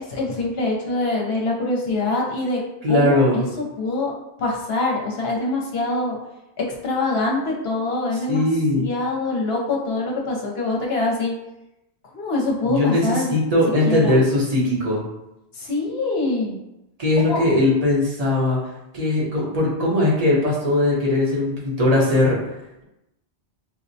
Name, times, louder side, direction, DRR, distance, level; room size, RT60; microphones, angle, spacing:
voice 1, 0.0-2.6 2.9-4.1 4.4-6.2 6.6-8.4 8.8-11.3 12.1-13.3 13.8-14.2 15.5-16.6 17.3-17.4, left 2 dB, 65° left, -2 dB, 0.9 m, -24 dB
voice 2, 2.8-3.4 8.3-8.9 12.6-15.0 17.0-18.6 18.9-22.4, left 2 dB, 40° right, -5 dB, 0.9 m, -19 dB
4.4 x 2.1 x 2.6 m, 0.91 s
omnidirectional pair, 1.1 m